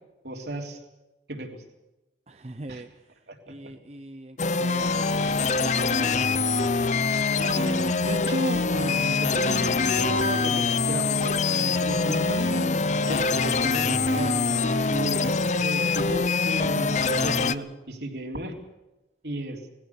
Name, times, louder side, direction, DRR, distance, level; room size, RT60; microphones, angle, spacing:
voice 1, 0.2-0.8 1.3-1.6 2.7-2.8 3.5-3.6 7.1-18.5 19.2-19.6, right 1 dB, 65° right, 2 dB, 3.6 m, -33 dB
voice 2, 2.3-6.5, right 2 dB, 35° right, 8 dB, 0.7 m, -41 dB
sound 1, 4.4-17.6, left 4 dB, 40° left, 0.6 m, -24 dB
20.5 x 16.0 x 8.3 m, 1.0 s
head